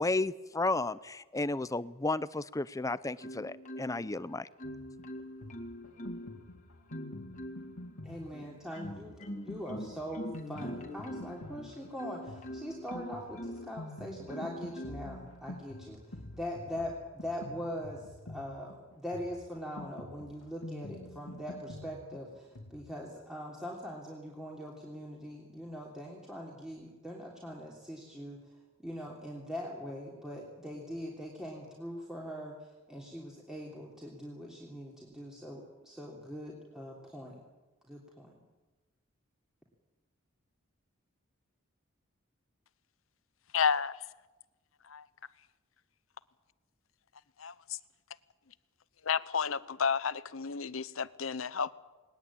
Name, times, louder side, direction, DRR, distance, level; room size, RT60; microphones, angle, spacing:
voice 1, 0.0-4.5, left 2 dB, 15° left, 16 dB, 0.6 m, -33 dB
Marimba xylophone, 3.2-4.2 4.6-6.4 6.9-7.8 8.3-13.8 14.3-15.2 15.7-16.0, equal, 35° left, 2.2 m, -43 dB
Drum kit, 4.6-22.8, left 1 dB, 85° left, 2.3 m, -48 dB
voice 2, 8.0-16.0 16.3-28.4 28.8-32.5 32.9-37.4 37.9-38.3, equal, 5° right, -3 dB, 3.2 m, -42 dB
voice 3, 43.5-44.0 44.9-45.0 47.4-47.8 49.0-51.7, left 6 dB, 70° left, 16 dB, 0.9 m, -31 dB
20.5 x 19.5 x 8.7 m, 1.2 s
head